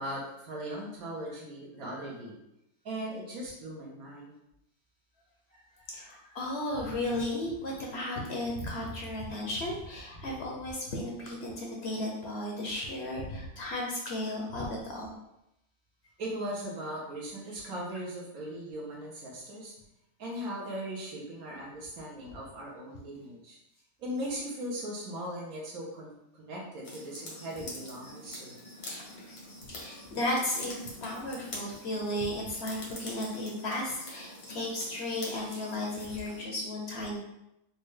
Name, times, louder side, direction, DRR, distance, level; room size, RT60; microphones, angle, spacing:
voice 1, 0.0-2.4 2.8-4.3 16.2-19.7 20.2-23.6 24.0-28.5, right 1 dB, 75° right, -4 dB, 1.2 m, -39 dB
voice 2, 5.5-15.1 28.8-37.2, left 1 dB, 60° left, -2 dB, 0.8 m, -35 dB
sound 1, 26.8-36.5, left 1 dB, 85° left, 1.5 m, -45 dB
4.1 x 2.2 x 3.1 m, 0.87 s
omnidirectional pair, 1.5 m